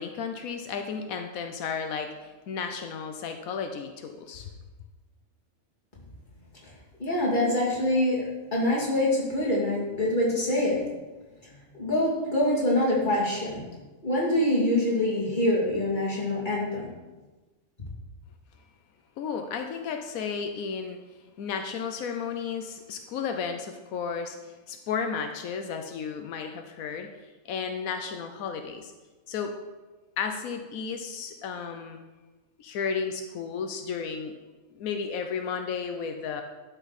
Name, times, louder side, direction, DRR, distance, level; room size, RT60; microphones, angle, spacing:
voice 1, 0.0-4.5 19.2-21.0 21.4-24.4 24.7-27.1 27.4-28.9 29.3-29.6 30.2-32.0 32.6-34.3 34.7-36.4, left 6 dB, 90° left, 6 dB, 1.1 m, -33 dB
voice 2, 7.0-8.2 8.5-10.8 11.8-13.6 14.0-16.9, left 1 dB, 35° left, -5 dB, 2.7 m, -25 dB
11.5 x 6.0 x 4.1 m, 1.2 s
omnidirectional pair, 1.5 m